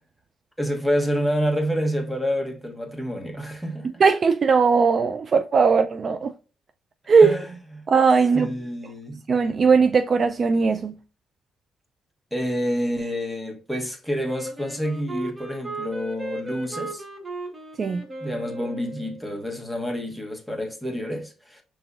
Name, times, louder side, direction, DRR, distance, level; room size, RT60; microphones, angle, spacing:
voice 1, 0.6-3.9 7.2-7.9 8.3-9.2 12.3-17.0 18.2-21.6, equal, ahead, 1.2 m, -28 dB
voice 2, 4.0-6.3 7.1-7.3 7.9-8.5 9.3-11.0 17.8-18.0, right 5 dB, 45° right, 0.3 m, -18 dB
Wind instrument woodwind instrument, 14.3-19.3, right 2 dB, 25° right, 1.2 m, -36 dB
5.2 x 3.5 x 2.4 m
cardioid pair, 90°, 0 cm